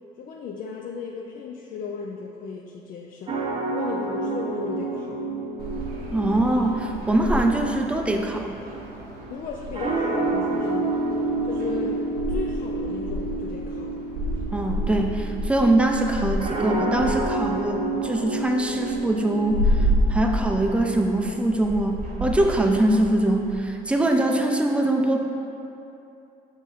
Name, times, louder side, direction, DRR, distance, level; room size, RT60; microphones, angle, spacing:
voice 1, 0.2-3.4 3.7-5.3 9.3-10.9 11.5-13.9, left 5 dB, 55° left, 0 dB, 0.4 m, -35 dB
sound 1, 3.3-19.8, right 3 dB, 35° right, 0.9 m, -30 dB
sound 2, 5.6-23.5, equal, 65° right, 0.9 m, -31 dB
voice 2, 6.1-8.5 14.5-25.2, right 1 dB, 5° right, 2 dB, 0.5 m, -23 dB
7.2 x 3.6 x 4.2 m, 2.8 s
cardioid pair, 110°, 17 cm